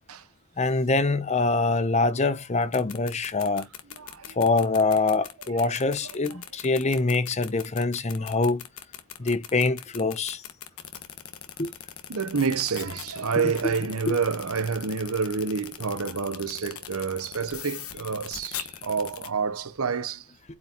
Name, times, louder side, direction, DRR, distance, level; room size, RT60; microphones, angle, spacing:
voice 1, 0.6-3.7 4.4-8.6 9.2-10.4 11.6-11.7 13.6-13.7 14.1-14.2, left 3 dB, 30° left, 0.7 m, -24 dB
sound 1, 2.6-19.3, left 10 dB, 80° left, 1.2 m, -39 dB
voice 2, 4.0-4.4 5.6-5.7 12.1-20.3, right 5 dB, 80° right, 0.9 m, -28 dB
8.5 x 4.5 x 3.0 m
head